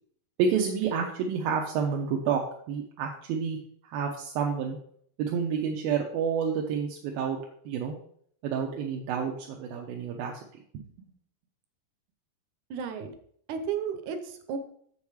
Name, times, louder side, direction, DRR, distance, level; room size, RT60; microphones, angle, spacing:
voice 1, 0.4-3.6 3.8-4.8 5.2-7.4 7.7-8.0 8.4-10.4 10.7-10.8, right 6 dB, 90° right, 1 dB, 2.7 m, -29 dB
voice 2, 12.7-13.1 13.5-14.6, right 7 dB, 70° right, 8 dB, 2.0 m, -33 dB
7.1 x 7.0 x 4.7 m, 0.64 s
omnidirectional pair, 4.1 m